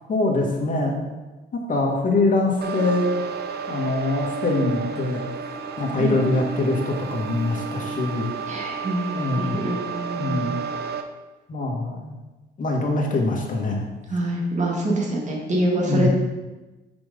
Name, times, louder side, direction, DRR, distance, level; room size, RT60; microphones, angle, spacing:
voice 1, 0.1-1.1 1.5-3.2 3.7-5.2 5.8-8.3 9.1-9.6 10.2-10.5 11.5-12.2 12.6-13.9 15.9-16.1, left 2 dB, 40° left, 0 dB, 1.7 m, -23 dB
sound 1, 2.6-11.0, right 6 dB, 55° right, 0.7 m, -31 dB
voice 2, 8.5-10.4 14.1-16.1, right 1 dB, 35° right, -2 dB, 2.0 m, -25 dB
5.9 x 5.2 x 5.2 m, 1.1 s
cardioid pair, 90°, 20 cm